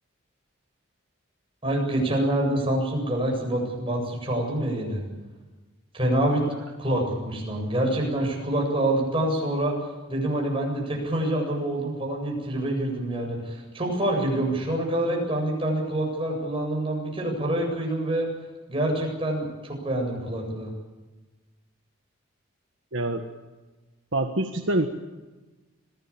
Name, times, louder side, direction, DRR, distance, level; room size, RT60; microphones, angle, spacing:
voice 1, 1.6-5.0 5.9-6.4 6.8-9.7 10.1-18.3 18.7-20.7, right 1 dB, 25° right, 0 dB, 8.0 m, -26 dB
voice 2, 22.9-23.2 24.1-24.9, right 1 dB, 60° right, 4 dB, 1.5 m, -25 dB
26.0 x 18.0 x 8.6 m, 1.2 s
head